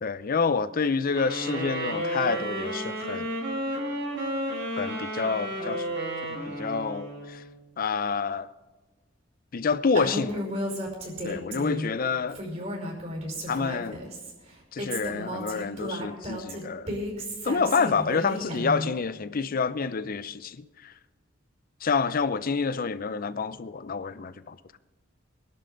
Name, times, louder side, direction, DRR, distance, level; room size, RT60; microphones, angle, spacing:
voice 1, 0.0-3.3 4.7-5.9 6.3-7.4 7.8-8.5 9.5-10.4 11.2-12.4 13.5-14.0 14.7-16.9 17.4-20.9 21.8-24.6, left 5 dB, 45° left, 0.5 m, -28 dB
sound 1, 1.1-7.5, right 1 dB, 65° right, 4.6 m, -32 dB
Female speech woman speaking, 9.9-11.9 12.3-14.3 14.8-18.9, equal, 40° right, 5.3 m, -33 dB
24.0 x 11.5 x 3.9 m
head